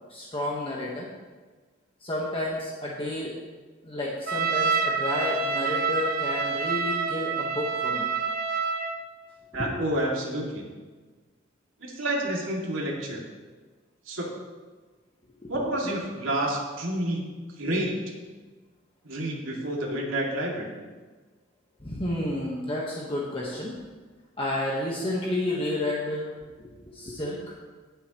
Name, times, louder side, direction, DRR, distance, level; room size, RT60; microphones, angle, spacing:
voice 1, 0.1-1.1 2.0-3.4 3.8-8.1 9.5-9.7 15.4-15.7 21.8-23.8 24.4-26.3 26.6-27.4, left 1 dB, 25° left, -4 dB, 1.3 m, -31 dB
Trumpet, 4.3-9.0, right 5 dB, 50° right, 1.0 m, -27 dB
voice 2, 9.5-10.6 11.8-13.2 14.1-14.3 15.5-17.2 17.6-18.0 19.0-20.7, right 1 dB, 80° right, -3 dB, 2.4 m, -29 dB
18.5 x 7.8 x 3.1 m, 1.4 s
head